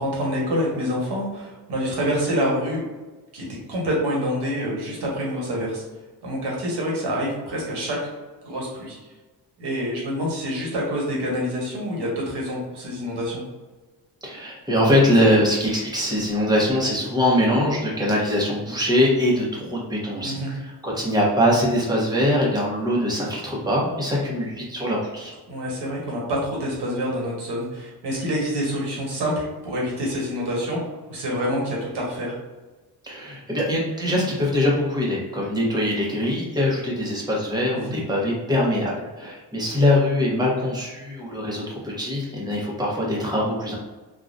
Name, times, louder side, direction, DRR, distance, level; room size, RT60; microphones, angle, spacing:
voice 1, 0.0-2.8 3.3-5.8 6.2-8.0 8.4-9.0 9.6-13.4 20.2-20.5 25.5-30.8 31.1-32.3 37.7-38.0, equal, 80° right, -3 dB, 1.3 m, -27 dB
voice 2, 14.2-25.3 33.0-43.8, left 1 dB, 10° right, -4 dB, 0.9 m, -22 dB
3.6 x 2.3 x 2.5 m, 1.2 s
cardioid pair, 110°, 40 cm